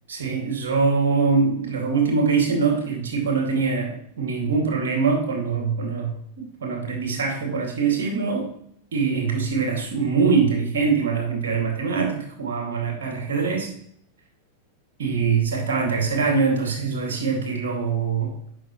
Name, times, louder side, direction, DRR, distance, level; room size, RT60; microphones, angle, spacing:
voice 1, 0.1-8.5 8.9-13.7 15.0-18.3, right 5 dB, 60° right, 2 dB, 2.3 m, -23 dB
9.6 x 5.9 x 3.1 m, 0.69 s
figure-of-eight pair, 90°, 0 cm